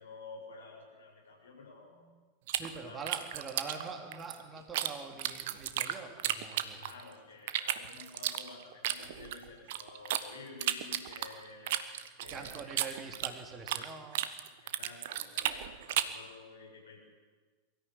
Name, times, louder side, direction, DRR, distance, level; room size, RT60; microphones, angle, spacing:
voice 1, 0.0-2.1 2.7-3.1 6.8-11.8 12.2-12.9 14.6-17.0, left 4 dB, 65° left, 0 dB, 7.0 m, -51 dB
voice 2, 2.5-6.9 12.3-14.2, right 4 dB, 20° right, 3 dB, 3.1 m, -44 dB
sound 1, 2.5-4.9 5.2-7.1 7.5-10.2 10.6-13.9 14.1-16.2, right 13 dB, 55° right, 1.2 m, -34 dB
23.0 x 13.5 x 9.2 m, 1.3 s
figure-of-eight pair, 90°, 0 cm